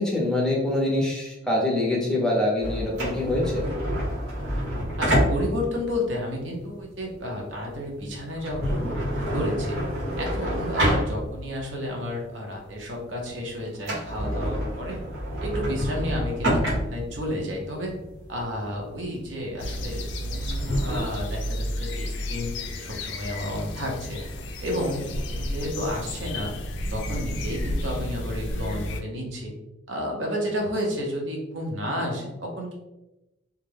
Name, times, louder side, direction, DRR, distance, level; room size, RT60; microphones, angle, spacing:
voice 1, 0.0-3.6, left 1 dB, 5° left, -4 dB, 0.5 m, -24 dB
sound 1, 2.6-11.6 12.0-12.1 12.7-13.0 13.3-13.4 13.7-21.0, equal, 85° right, 1.1 m, -28 dB
voice 2, 5.0-9.8 10.2-15.0 15.4-17.9 18.3-24.3 24.6-26.5 26.9-29.5 29.9-32.7, left 1 dB, 70° right, -1 dB, 0.7 m, -31 dB
sound 2, 19.6-29.0, left 1 dB, 65° left, 0.3 m, -32 dB
2.3 x 2.1 x 3.2 m, 0.97 s
head